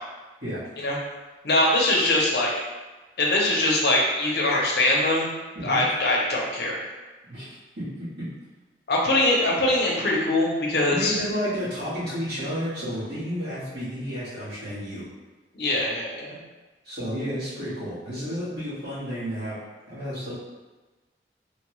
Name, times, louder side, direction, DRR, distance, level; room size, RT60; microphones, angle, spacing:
voice 1, 1.4-2.5 3.2-5.3 5.6-6.9 8.9-11.1 15.5-16.4, left 1 dB, 65° left, -2 dB, 0.6 m, -22 dB
voice 2, 7.3-8.3 10.9-15.1 16.8-19.6 19.9-20.3, equal, 60° right, -13 dB, 1.3 m, -31 dB
3.2 x 2.2 x 3.0 m, 1.2 s
head